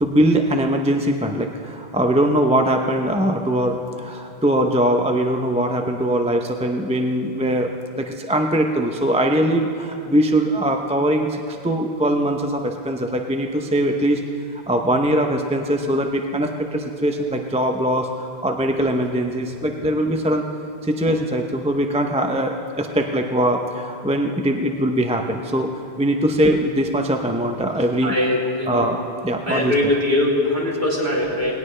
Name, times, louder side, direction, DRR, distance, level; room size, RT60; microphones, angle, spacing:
voice 1, 0.0-7.7 8.0-14.2 14.7-20.4 20.8-25.7 26.0-28.1 28.7-29.0 29.2-29.7, right 1 dB, 5° right, 3 dB, 0.6 m, -21 dB
voice 2, 19.8-20.1 28.0-28.9 29.5-31.5, left 1 dB, 50° right, -5 dB, 3.3 m, -22 dB
19.5 x 17.5 x 3.3 m, 2.8 s
omnidirectional pair, 1.1 m